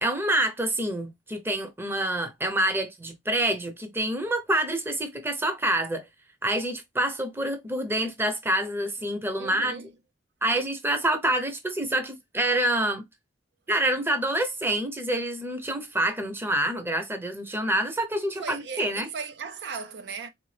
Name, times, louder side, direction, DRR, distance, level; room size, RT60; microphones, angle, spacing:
voice 1, 0.0-6.0 6.4-9.7 10.4-13.0 13.7-19.1, right 1 dB, 10° right, 0.7 m, -27 dB
voice 2, 9.4-9.9 18.2-20.3, right 5 dB, 65° right, 0.5 m, -37 dB
4.0 x 3.4 x 3.2 m
head